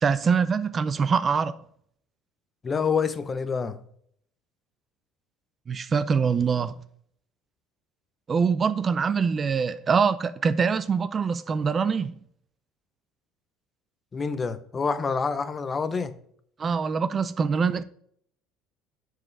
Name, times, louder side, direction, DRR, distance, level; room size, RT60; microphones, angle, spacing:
voice 1, 0.0-1.6 5.7-6.8 8.3-12.2 16.6-17.8, right 5 dB, 25° right, 0.4 m, -24 dB
voice 2, 2.6-3.8 14.1-16.1, left 5 dB, 25° left, 0.6 m, -27 dB
7.6 x 4.8 x 6.1 m
cardioid pair, 135°, 0 cm